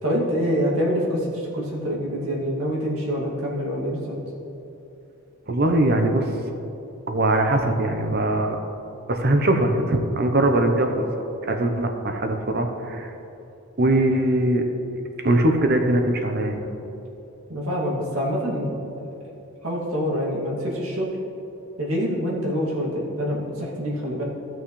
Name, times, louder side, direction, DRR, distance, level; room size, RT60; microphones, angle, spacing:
voice 1, 0.0-4.1 17.5-18.7 19.6-21.1 21.8-24.2, equal, 80° right, -4 dB, 2.3 m, -26 dB
voice 2, 5.5-6.3 7.1-8.6 9.1-11.1 11.5-13.1 13.8-14.6 15.2-16.7, right 1 dB, 45° right, 5 dB, 0.8 m, -21 dB
16.0 x 6.2 x 3.2 m, 2.9 s
head